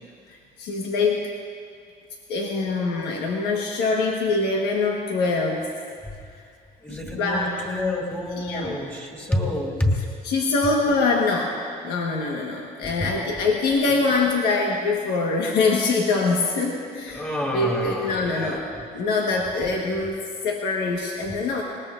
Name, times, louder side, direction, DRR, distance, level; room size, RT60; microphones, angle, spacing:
voice 1, 0.3-1.3 2.3-5.6 6.9-7.6 8.4-8.8 10.2-11.5 11.8-17.2 17.5-18.6 18.9-21.6, left 3 dB, 85° left, -1 dB, 1.4 m, -24 dB
voice 2, 6.8-10.0 13.0-13.1 17.1-18.8, left 1 dB, 10° left, 0 dB, 2.5 m, -28 dB
20.0 x 19.5 x 2.5 m, 2.2 s
cardioid pair, 110°, 17 cm